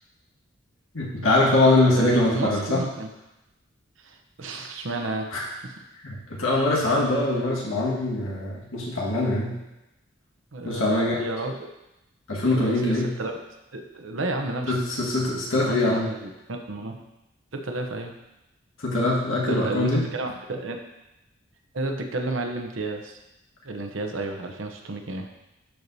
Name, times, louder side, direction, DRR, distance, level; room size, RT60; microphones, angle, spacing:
voice 1, 0.9-2.8 5.3-5.5 6.0-9.5 10.7-11.3 12.3-13.1 14.7-16.1 18.8-20.0, left 2 dB, 80° left, -4 dB, 1.7 m, -23 dB
voice 2, 1.9-3.1 4.0-5.3 5.6-5.7 10.5-11.5 12.5-13.4 13.7-14.8 15.5-17.0 17.5-18.1 19.5-20.9 21.7-23.2 23.6-25.3, right 2 dB, 70° right, 4 dB, 0.8 m, -31 dB
12.0 x 4.7 x 2.7 m, 0.94 s
head